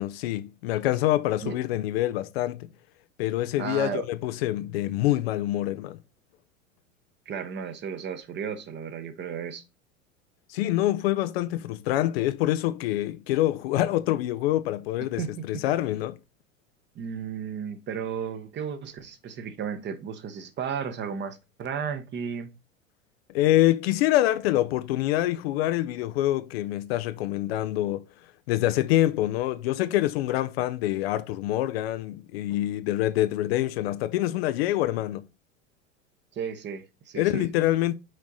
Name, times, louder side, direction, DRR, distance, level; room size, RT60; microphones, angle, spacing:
voice 1, 0.0-2.7 3.2-6.0 10.5-15.2 15.5-16.2 23.3-28.0 28.5-35.3 37.1-37.9, left 14 dB, 50° left, 0.6 m, -26 dB
voice 2, 3.6-4.1 7.3-9.6 15.2-15.6 16.9-22.5 36.3-37.5, right 7 dB, 25° right, 1.0 m, -34 dB
6.5 x 4.7 x 3.9 m
figure-of-eight pair, 85°, 40 cm